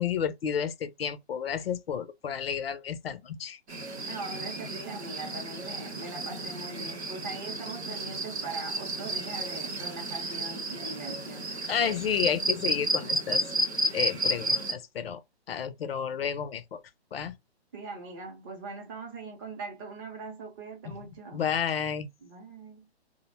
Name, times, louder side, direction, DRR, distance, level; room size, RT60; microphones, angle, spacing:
voice 1, 0.0-3.6 11.7-13.4 13.9-15.2 15.5-16.8 17.1-17.3 20.9-21.0 21.3-22.1, left 8 dB, 65° left, 0.5 m, -31 dB
sound 1, 3.7-14.7, right 1 dB, 85° right, 0.9 m, -32 dB
voice 2, 4.1-11.5 17.7-21.4 22.2-22.9, right 3 dB, 20° right, 0.5 m, -41 dB
2.4 x 2.0 x 3.0 m
figure-of-eight pair, 135°, 33 cm